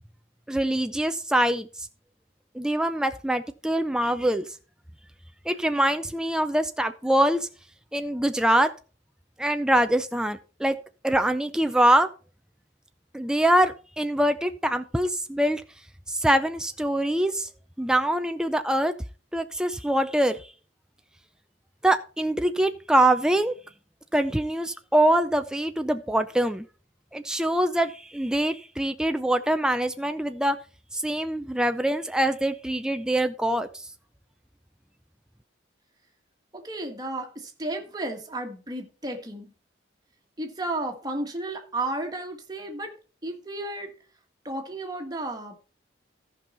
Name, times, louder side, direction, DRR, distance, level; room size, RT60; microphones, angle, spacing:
voice 1, 0.5-1.9 2.5-4.5 5.5-7.5 7.9-8.7 9.4-10.8 11.0-12.1 13.1-15.6 16.1-17.5 17.8-18.9 19.3-20.5 21.8-23.5 24.1-26.6 27.1-30.6 30.9-33.9, right 1 dB, 5° right, 0.4 m, -24 dB
voice 2, 36.5-39.5 40.4-42.9 43.2-43.9 44.4-45.6, right 2 dB, 20° right, 1.7 m, -33 dB
14.5 x 5.5 x 4.3 m
head